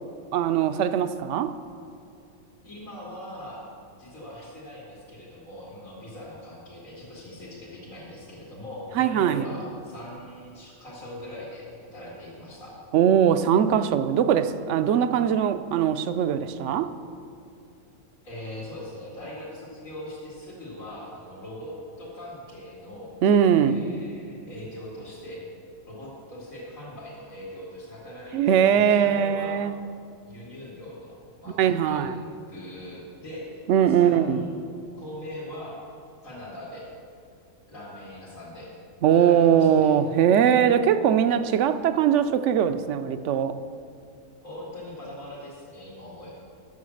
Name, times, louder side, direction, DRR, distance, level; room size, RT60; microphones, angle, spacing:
voice 1, 0.3-1.5 9.0-9.5 12.9-16.9 23.2-23.8 28.3-29.7 31.6-32.2 33.7-34.4 39.0-43.5, right 9 dB, 70° right, 11 dB, 0.8 m, -21 dB
voice 2, 2.6-3.6 4.0-11.7 11.9-12.8 18.2-23.1 23.4-25.4 25.9-29.7 30.3-33.6 33.9-34.6 34.9-35.7 36.2-36.9 37.7-38.7 39.2-39.9 44.4-46.4, left 1 dB, 85° left, -6 dB, 2.8 m, -41 dB
11.0 x 7.6 x 6.4 m, 2.5 s
omnidirectional pair, 1.4 m